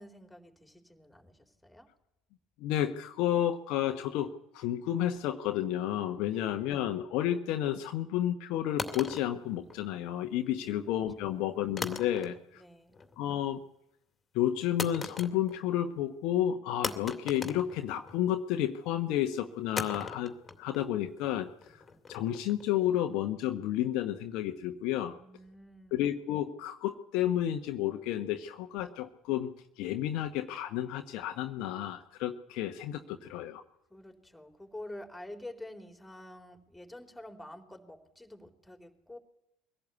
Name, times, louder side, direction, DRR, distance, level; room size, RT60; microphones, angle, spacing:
voice 1, 0.0-1.9 6.3-6.7 10.6-10.9 11.2-11.4 12.5-13.0 25.1-26.0 33.9-39.2, left 1 dB, 5° left, 4 dB, 3.9 m, -48 dB
voice 2, 2.6-12.6 13.2-13.6 14.3-21.8 22.1-25.2 25.9-33.6, left 11 dB, 55° left, 6 dB, 1.1 m, -31 dB
sound 1, 8.8-10.2 11.8-12.6 12.9-13.4 14.8-15.7 16.0-16.1 16.8-18.4 19.8-22.8, left 4 dB, 20° left, 2.5 m, -40 dB
23.5 x 17.0 x 8.4 m, 0.82 s
figure-of-eight pair, 65°, 0 cm